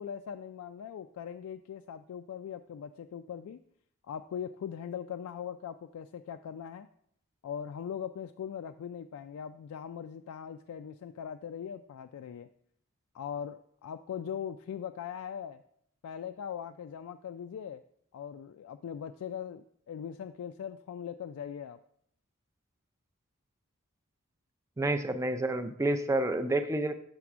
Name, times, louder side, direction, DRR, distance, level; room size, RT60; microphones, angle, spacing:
voice 1, 0.0-3.6 4.1-6.9 7.4-12.5 13.1-15.6 16.0-17.8 18.1-21.8, left 8 dB, 75° left, 8 dB, 0.3 m, -40 dB
voice 2, 24.8-26.9, right 2 dB, 15° right, 8 dB, 0.4 m, -29 dB
7.3 x 3.4 x 6.0 m, 0.69 s
head